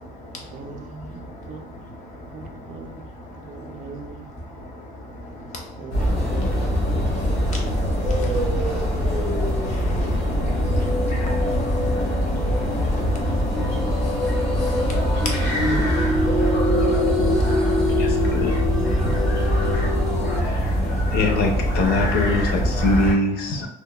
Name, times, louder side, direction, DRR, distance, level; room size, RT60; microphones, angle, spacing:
voice 1, 0.5-1.7 2.3-3.0 3.3-4.2 5.8-6.6 10.3-11.1 15.4-16.2, right 4 dB, 50° right, 4 dB, 0.4 m, -38 dB
sound 1, 5.9-23.1, equal, 85° left, 0.9 m, -23 dB
sound 2, 6.0-7.8 8.3-20.4, left 1 dB, 5° left, 0.6 m, -27 dB
voice 2, 7.3-7.6 8.1-8.6 9.7-10.2 10.8-10.9 11.7-11.8 12.6-12.9 13.9-15.3 15.7-15.8 16.8-17.0 17.4-17.6 19.0-19.1, equal, 45° left, 0 dB, 0.8 m, -33 dB
voice 3, 18.0-18.5 21.1-23.7, left 2 dB, 70° left, 2 dB, 0.5 m, -23 dB
2.9 x 2.2 x 2.2 m, 0.82 s
cardioid pair, 110°, 17 cm